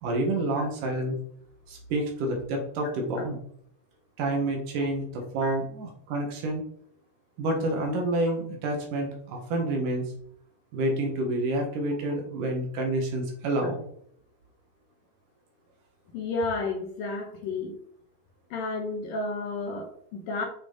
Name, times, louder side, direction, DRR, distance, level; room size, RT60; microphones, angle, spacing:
voice 1, 0.0-1.2 1.7-3.4 4.2-6.6 7.4-10.1 10.7-13.8, right 1 dB, 60° right, 2 dB, 2.5 m, -28 dB
voice 2, 16.1-17.8 18.5-20.5, left 3 dB, 70° left, 2 dB, 2.3 m, -32 dB
8.2 x 6.1 x 4.0 m, 0.64 s
omnidirectional pair, 5.2 m